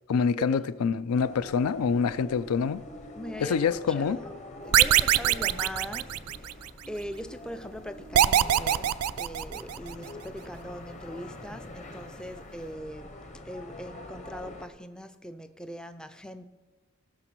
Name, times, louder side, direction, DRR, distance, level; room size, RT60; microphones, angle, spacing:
voice 1, 0.1-2.8 3.4-4.2, left 6 dB, 85° left, 0.4 m, -26 dB
sound 1, 1.1-14.7, left 1 dB, 30° left, 0.9 m, -45 dB
voice 2, 3.1-4.3 4.6-13.1 13.4-16.5, equal, 5° left, 0.3 m, -41 dB
sound 2, 4.7-6.7 8.1-9.9, right 11 dB, 90° right, 0.4 m, -23 dB
18.0 x 6.1 x 4.5 m
head